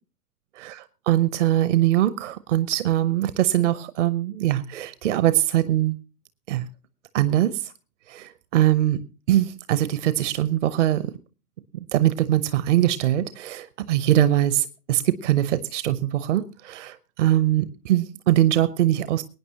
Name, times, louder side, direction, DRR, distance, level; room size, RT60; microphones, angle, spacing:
voice 1, 0.6-6.0 6.5-6.6 7.1-7.6 8.1-9.0 9.3-11.0 11.9-19.2, right 13 dB, 50° right, 0.9 m, -22 dB
23.0 x 9.6 x 2.9 m
figure-of-eight pair, 105°, 47 cm